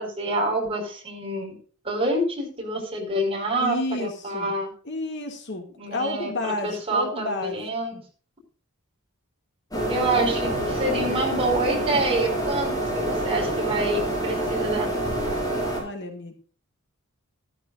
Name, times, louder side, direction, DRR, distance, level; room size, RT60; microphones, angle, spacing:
voice 1, 0.0-1.5 1.8-4.7 5.8-8.0 9.9-14.9, right 2 dB, 25° right, 0 dB, 5.3 m, -27 dB
voice 2, 3.6-4.5 4.8-7.6 7.9-8.0 15.7-16.3, left 2 dB, 55° left, 3 dB, 2.3 m, -31 dB
sound 1, 9.7-15.8, right 1 dB, 15° left, 6.1 m, -27 dB
15.0 x 13.5 x 2.6 m, 0.40 s
head